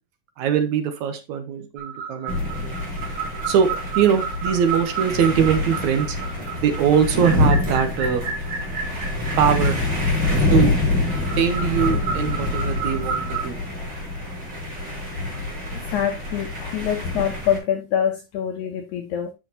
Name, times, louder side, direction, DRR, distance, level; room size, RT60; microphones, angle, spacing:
voice 1, 0.4-2.4 2.6-2.7 3.5-3.7 4.0-6.2 6.6-8.2 9.4-9.8 10.5-10.7 11.4-13.6, right 8 dB, 70° right, 2.1 m, -21 dB
sound 1, 1.8-13.4, right 6 dB, 40° right, 2.9 m, -32 dB
sound 2, 2.3-17.6, left 2 dB, 25° right, 3.5 m, -26 dB
voice 2, 15.7-19.3, left 9 dB, 75° left, 1.9 m, -25 dB
10.0 x 5.8 x 2.8 m
omnidirectional pair, 3.8 m